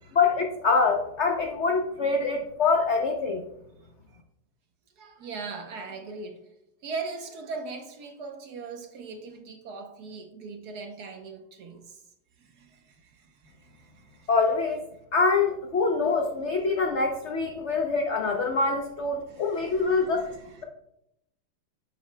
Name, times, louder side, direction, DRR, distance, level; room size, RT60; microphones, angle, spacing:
voice 1, 0.1-3.4 14.3-14.8 15.1-20.2, left 4 dB, 80° left, 2 dB, 0.6 m, -25 dB
voice 2, 5.0-6.4 6.8-12.0 12.4-14.3 19.1-20.6, right 4 dB, 60° right, 4 dB, 1.2 m, -40 dB
9.3 x 7.8 x 2.2 m, 0.82 s
omnidirectional pair, 2.2 m